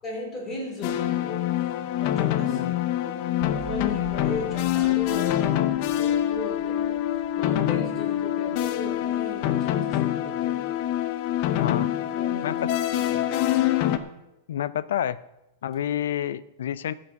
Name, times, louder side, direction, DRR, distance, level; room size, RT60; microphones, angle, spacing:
voice 1, 0.0-1.5 2.0-2.7 3.0-7.1 7.3-10.8 11.5-11.8 12.1-12.6, left 2 dB, 15° left, 0 dB, 2.9 m, -37 dB
sound 1, 0.8-14.0, left 12 dB, 35° left, 0.7 m, -25 dB
voice 2, 2.5-2.8 11.6-11.9 12.4-12.6 14.5-15.2 15.6-16.9, left 10 dB, 80° left, 17 dB, 0.5 m, -28 dB
sound 2, 3.4-10.6, right 4 dB, 80° right, 0.9 m, -44 dB
15.0 x 6.1 x 5.8 m, 0.94 s
supercardioid pair, 170°, 0 cm